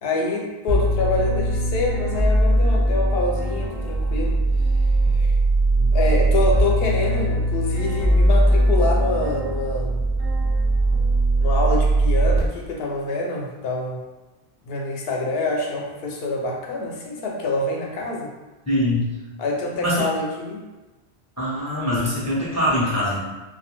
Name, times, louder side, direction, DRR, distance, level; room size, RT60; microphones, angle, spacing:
voice 1, 0.0-4.4 5.1-5.3 5.8-10.0 11.4-14.0 14.6-18.3 19.4-20.6, left 2 dB, 75° left, -1 dB, 0.8 m, -26 dB
sound 1, 0.7-12.4, right 1 dB, 40° right, 0.4 m, -20 dB
voice 2, 18.7-19.1 19.8-20.0 21.4-23.2, left 1 dB, 25° left, -7 dB, 0.4 m, -23 dB
2.2 x 2.2 x 2.9 m, 1.1 s
omnidirectional pair, 1.0 m